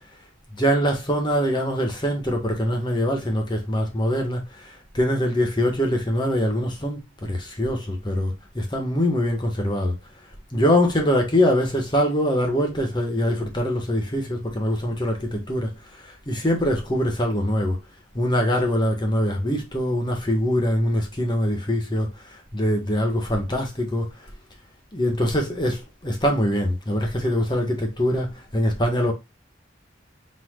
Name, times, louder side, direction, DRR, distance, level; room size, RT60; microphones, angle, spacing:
voice 1, 0.6-4.4 4.9-7.0 7.3-9.9 10.5-15.7 16.3-17.8 18.1-22.1 22.5-24.1 24.9-29.1, equal, 25° left, 1.5 m, -23 dB
4.8 x 4.3 x 2.4 m
head